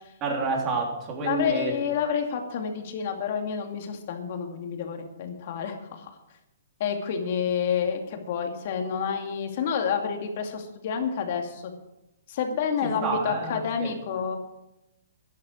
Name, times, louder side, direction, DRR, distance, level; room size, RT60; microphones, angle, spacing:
voice 1, 0.2-1.7 13.0-13.9, right 3 dB, 25° right, 0 dB, 3.5 m, -28 dB
voice 2, 1.2-6.1 6.8-11.7 12.3-14.4, left 7 dB, 50° left, 4 dB, 2.4 m, -29 dB
12.0 x 10.5 x 6.3 m, 0.91 s
hypercardioid pair, 155°, 0 cm